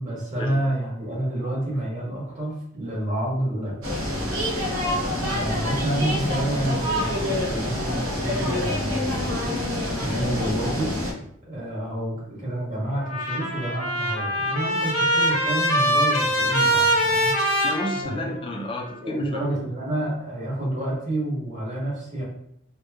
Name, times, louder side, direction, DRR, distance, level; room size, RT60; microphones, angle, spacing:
voice 1, 0.0-3.8 5.1-9.5 10.0-10.9 11.4-17.3 18.0-18.3 19.0-22.2, right 1 dB, 40° right, -6 dB, 1.2 m, -29 dB
sound 1, 3.8-11.1, left 1 dB, 85° right, 0.7 m, -26 dB
Trumpet, 13.0-18.6, equal, 85° left, 0.7 m, -23 dB
voice 2, 17.6-19.4, left 1 dB, 25° left, 1 dB, 0.3 m, -31 dB
2.9 x 2.1 x 2.3 m, 0.69 s
head